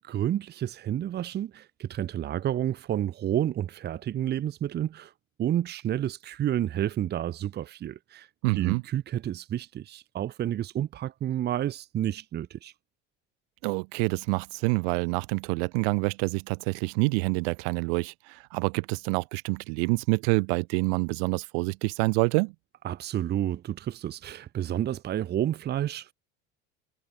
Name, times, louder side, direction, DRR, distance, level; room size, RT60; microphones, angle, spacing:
voice 1, 0.0-5.1 5.4-8.3 8.6-12.7 22.8-26.1, right 11 dB, 35° right, 1.3 m, -30 dB
voice 2, 8.4-8.8 13.6-22.5, right 36 dB, 90° right, 4.9 m, -27 dB
cardioid pair, 150°, 29 cm